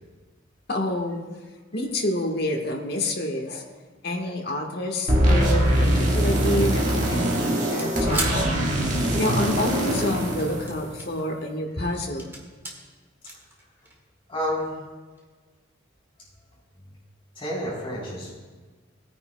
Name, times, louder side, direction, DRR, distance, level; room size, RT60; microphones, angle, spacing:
voice 1, 0.7-1.2 1.7-3.7 4.0-8.8 9.1-12.3, left 1 dB, 55° left, 1 dB, 1.3 m, -28 dB
sound 1, 5.1-11.2, right 1 dB, 40° right, 1.7 m, -23 dB
sound 2, 7.8-9.4 10.2-11.2 11.7-12.7 13.3-14.1 15.2-15.3, right 2 dB, 10° right, 1.6 m, -35 dB
voice 2, 14.3-14.8 17.4-18.3, equal, 25° left, -6 dB, 3.8 m, -30 dB
19.0 x 9.5 x 2.2 m, 1.3 s
head